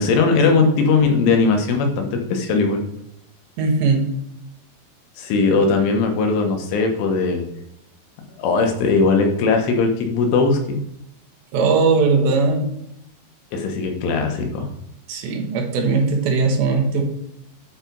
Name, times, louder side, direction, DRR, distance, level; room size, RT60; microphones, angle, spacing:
voice 1, 0.0-2.8 5.2-7.4 8.4-10.8 13.5-14.7, left 4 dB, 90° left, 3 dB, 3.8 m, -19 dB
voice 2, 3.6-4.1 11.5-12.7 15.1-17.0, right 4 dB, 75° right, 3 dB, 3.2 m, -19 dB
8.7 x 4.7 x 5.3 m, 0.80 s
omnidirectional pair, 5.4 m